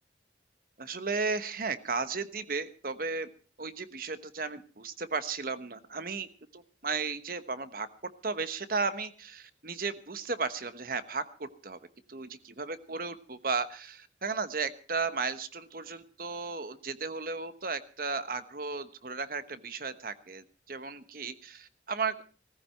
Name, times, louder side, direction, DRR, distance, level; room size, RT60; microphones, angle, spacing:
voice 1, 0.8-3.3 3.6-6.3 6.5-7.9 8.2-11.8 12.1-22.1, right 4 dB, 50° right, 12 dB, 1.1 m, -35 dB
18.0 x 15.0 x 4.5 m, 0.38 s
head